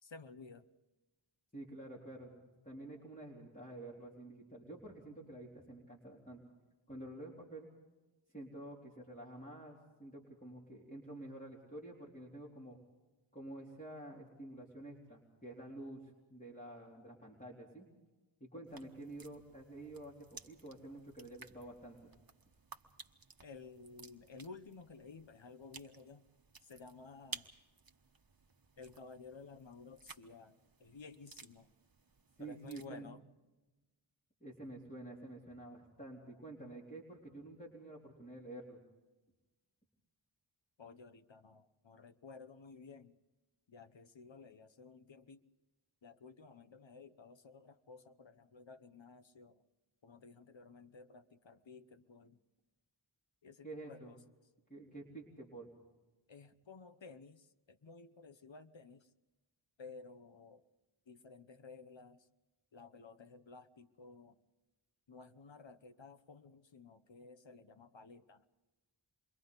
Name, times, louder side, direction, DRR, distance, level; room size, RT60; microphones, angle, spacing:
voice 1, 0.0-0.7 23.4-26.2 26.6-27.5 28.8-31.7 32.4-33.2 40.8-43.2 43.7-45.4 46.0-49.6 50.0-52.4 53.4-54.2 56.3-59.1 59.8-60.6 61.1-62.3 62.7-64.4 65.1-68.5, left 4 dB, 65° left, 11 dB, 1.1 m, -54 dB
voice 2, 1.5-6.4 6.9-7.7 8.3-12.8 13.3-17.9 18.4-22.1 32.4-33.1 34.4-38.8 53.6-54.1 54.7-55.7, right 1 dB, 15° left, -5 dB, 3.8 m, -49 dB
sound 1, 18.7-32.9, right 4 dB, 45° right, 1.2 m, -56 dB
28.5 x 24.0 x 4.0 m, 1.1 s
wide cardioid pair, 55°, 48 cm